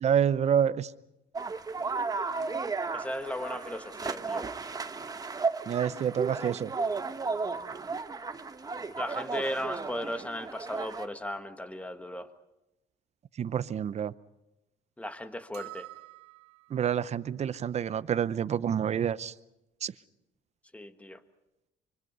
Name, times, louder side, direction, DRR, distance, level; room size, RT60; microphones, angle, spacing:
voice 1, 0.0-0.9 5.7-6.7 13.4-14.1 16.7-19.3 19.8-19.9, right 8 dB, 40° right, 0.7 m, -28 dB
sound 1, 1.3-11.1, right 4 dB, 20° right, 1.0 m, -34 dB
voice 2, 2.9-4.5 9.0-12.3 15.0-15.9 20.7-21.2, left 1 dB, 10° left, 1.5 m, -36 dB
sound 2, 15.5-16.9, right 19 dB, 90° right, 1.0 m, -47 dB
25.0 x 24.5 x 5.5 m
cardioid pair, 110°, 17 cm